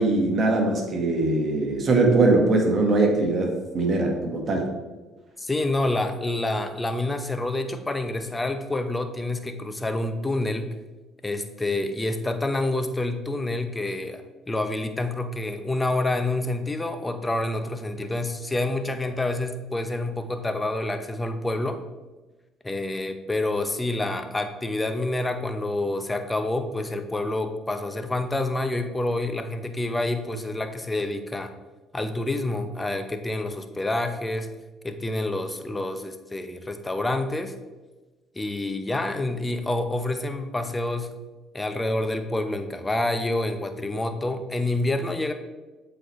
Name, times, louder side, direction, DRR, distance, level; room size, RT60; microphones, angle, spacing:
voice 1, 0.0-4.7, right 2 dB, 45° right, 2 dB, 1.4 m, -21 dB
voice 2, 5.4-10.8 11.2-21.8 22.6-31.5 31.9-34.5 34.8-37.5 38.4-41.1 41.5-45.3, left 2 dB, 15° left, 8 dB, 0.7 m, -28 dB
7.6 x 4.3 x 3.1 m, 1.2 s
supercardioid pair, 75°, 0 cm